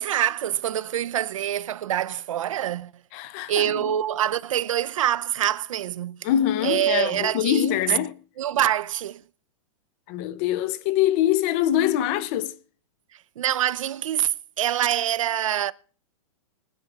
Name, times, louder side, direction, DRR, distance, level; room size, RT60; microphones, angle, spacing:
voice 1, 0.0-2.9 3.5-6.3 6.6-7.7 8.4-9.2 13.4-15.7, right 11 dB, 80° right, 0.6 m, -25 dB
voice 2, 3.1-3.9 6.2-8.1 10.1-12.5, left 11 dB, 25° left, 0.5 m, -24 dB
23.5 x 9.7 x 2.4 m
supercardioid pair, 175°, 17 cm